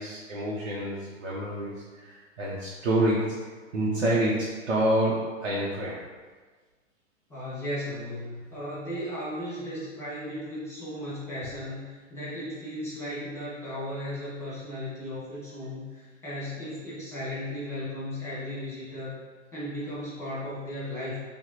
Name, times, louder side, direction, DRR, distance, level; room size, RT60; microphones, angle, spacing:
voice 1, 0.0-3.4 3.7-6.0, right 1 dB, 60° right, -5 dB, 0.8 m, -27 dB
voice 2, 7.3-19.2 19.5-21.2, left 1 dB, 5° left, -9 dB, 1.5 m, -36 dB
5.5 x 2.2 x 2.9 m, 1.4 s
figure-of-eight pair, 105°, 38 cm